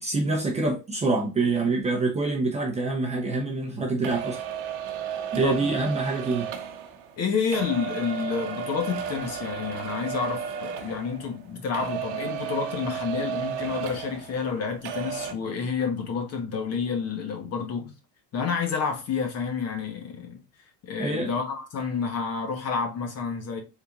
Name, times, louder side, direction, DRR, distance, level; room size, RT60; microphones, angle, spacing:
voice 1, 0.0-4.4 5.3-6.5 21.0-21.3, right 3 dB, 15° right, 0.7 m, -26 dB
sound 1, 4.0-11.5 11.7-14.6 14.8-15.3, right 8 dB, 55° right, 0.9 m, -34 dB
voice 2, 5.4-5.7 7.2-17.9 18.3-20.4 20.9-23.6, left 5 dB, 35° left, 1.0 m, -29 dB
4.2 x 3.8 x 2.4 m
cardioid pair, 145°, 45 cm